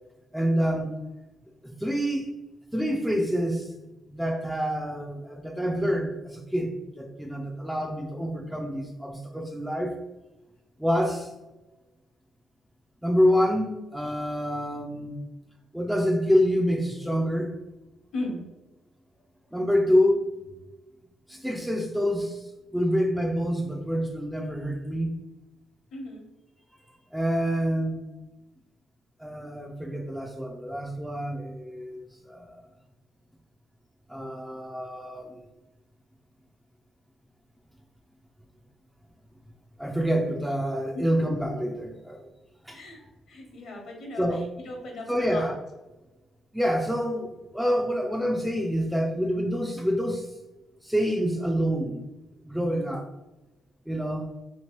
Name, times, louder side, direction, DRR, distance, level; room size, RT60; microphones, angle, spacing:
voice 1, 0.3-0.9 1.6-2.3 2.7-3.7 4.1-9.9 10.8-11.3 13.0-15.2 15.7-17.5 19.5-20.3 21.3-25.1 27.1-28.0 29.2-32.6 34.1-35.4 39.8-42.2 42.6-42.8 44.2-44.4 45.1-45.6 46.5-50.3 50.8-52.1 52.4-53.1 53.9-54.3, equal, 5° right, 2 dB, 0.4 m, -27 dB
voice 2, 25.9-26.2 42.7-43.0 43.3-44.3 44.6-45.5, left 2 dB, 65° left, 1 dB, 1.0 m, -36 dB
3.1 x 3.0 x 3.0 m, 1.1 s
cardioid pair, 90°, 0 cm